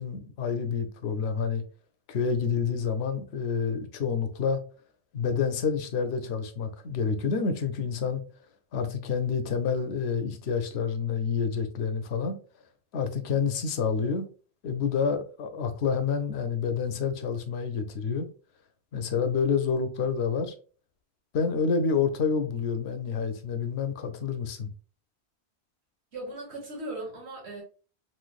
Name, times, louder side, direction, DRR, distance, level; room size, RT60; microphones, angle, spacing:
voice 1, 0.0-1.6 2.1-4.6 5.1-8.2 8.7-12.4 12.9-14.3 14.6-18.3 18.9-20.5 21.3-24.7, left 6 dB, 80° left, 0.9 m, -28 dB
voice 2, 26.1-27.6, right 1 dB, 90° right, 1.7 m, -38 dB
3.1 x 2.9 x 2.3 m
omnidirectional pair, 1.1 m